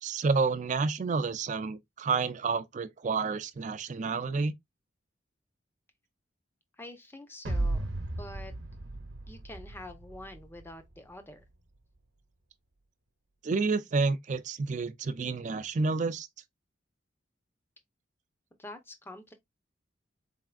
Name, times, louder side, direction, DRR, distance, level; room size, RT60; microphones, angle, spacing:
voice 1, 0.0-4.5 13.4-16.3, right 4 dB, 40° right, 0.4 m, -29 dB
voice 2, 6.8-7.9 8.2-8.5 9.3-11.4 18.6-19.3, left 1 dB, 10° left, 0.7 m, -46 dB
sound 1, 7.5-10.7, right 2 dB, 70° right, 0.8 m, -35 dB
4.1 x 3.4 x 2.4 m
head